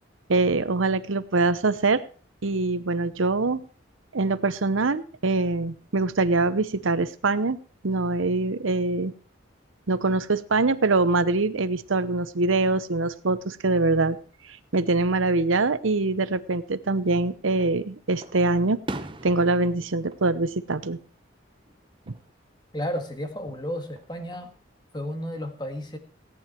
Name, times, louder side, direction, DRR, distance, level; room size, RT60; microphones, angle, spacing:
voice 1, 0.3-2.0 2.4-3.6 4.1-7.6 7.8-9.1 9.9-14.2 14.7-18.8 19.2-21.0 22.1-22.2, right 3 dB, 85° right, 12 dB, 0.9 m, -24 dB
Fireworks, 17.0-17.7 18.2-21.3 21.7-22.2 23.8-24.6, right 2 dB, 25° right, 0.8 m, -41 dB
voice 2, 22.7-24.5 24.9-26.0, equal, 20° left, 6 dB, 1.8 m, -32 dB
17.0 x 9.6 x 4.5 m, 0.40 s
head